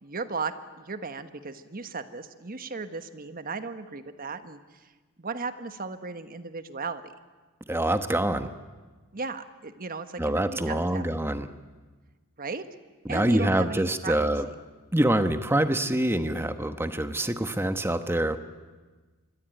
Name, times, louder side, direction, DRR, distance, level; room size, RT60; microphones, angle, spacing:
voice 1, 0.0-4.9 5.2-7.1 9.1-11.1 12.4-12.6 13.1-14.2, right 4 dB, 40° right, 10 dB, 1.3 m, -36 dB
voice 2, 7.7-8.5 10.2-11.5 13.0-14.5 14.9-18.4, right 1 dB, 10° right, 9 dB, 1.1 m, -25 dB
26.0 x 22.0 x 9.1 m, 1.3 s
head